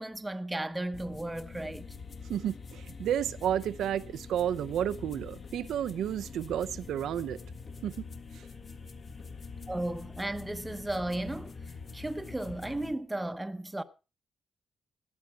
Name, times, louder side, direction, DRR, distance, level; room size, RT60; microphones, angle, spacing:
voice 1, 0.0-1.9 9.7-11.5 11.9-13.8, right 1 dB, 10° right, 0.9 m, -35 dB
sound 1, 0.9-12.9, left 4 dB, 40° left, 1.7 m, -45 dB
voice 2, 2.3-7.4 7.8-8.0 8.3-8.4, right 10 dB, 90° right, 0.7 m, -31 dB
17.0 x 11.0 x 4.6 m
cardioid pair, 125°, 0 cm